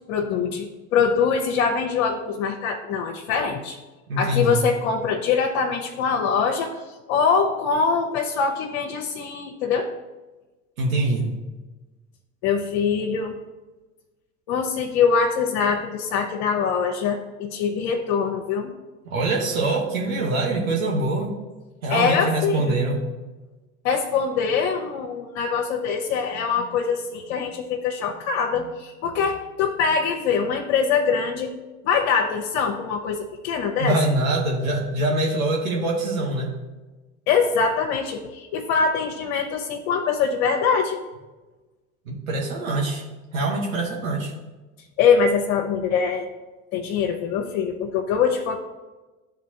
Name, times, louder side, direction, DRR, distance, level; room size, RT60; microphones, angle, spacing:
voice 1, 0.1-3.8 4.2-6.8 7.1-9.9 12.4-13.3 14.5-18.7 21.9-22.8 23.8-31.5 31.8-34.0 37.3-41.0 45.0-46.3 46.7-48.6, left 6 dB, 60° left, 3 dB, 0.9 m, -23 dB
voice 2, 4.1-4.6 10.8-11.3 19.0-21.4 21.8-23.0 33.8-36.5 42.1-43.0 43.3-44.3, right 2 dB, 85° right, -1 dB, 1.3 m, -24 dB
11.5 x 3.9 x 2.9 m, 1.2 s
hypercardioid pair, 80°, 41 cm